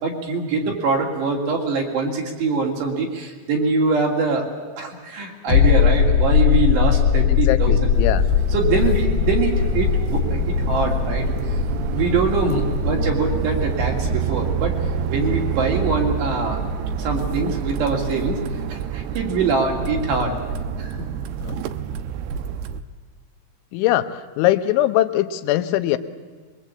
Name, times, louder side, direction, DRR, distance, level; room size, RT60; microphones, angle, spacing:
voice 1, 0.0-4.5 4.8-7.9 8.5-11.3 11.9-14.7 15.1-16.6 17.0-18.4 18.7-20.4 20.8-21.1, right 4 dB, 60° right, 1 dB, 4.8 m, -23 dB
sound 1, 5.5-16.8 17.1-17.2, left 8 dB, 55° left, 2.7 m, -21 dB
voice 2, 7.3-8.2 21.5-21.6 23.7-26.0, left 14 dB, 80° left, 10 dB, 3.2 m, -21 dB
sound 2, 7.9-22.8, right 7 dB, 80° right, 2.5 m, -27 dB
24.0 x 22.5 x 8.5 m, 1.5 s
omnidirectional pair, 5.7 m